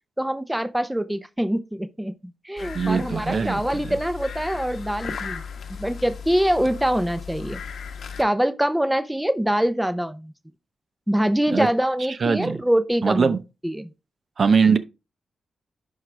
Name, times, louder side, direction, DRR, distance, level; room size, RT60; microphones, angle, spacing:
voice 1, 0.2-2.1 2.4-5.4 5.7-7.6 8.2-10.3 11.1-13.4 13.6-13.9, equal, 5° right, 0.7 m, -24 dB
sound 1, 2.6-8.2, left 6 dB, 75° left, 1.2 m, -36 dB
voice 2, 2.7-3.6 11.5-11.7 12.2-12.6 13.0-13.4 14.4-14.8, right 5 dB, 55° right, 0.8 m, -20 dB
11.0 x 4.8 x 3.4 m
cardioid pair, 70°, 0 cm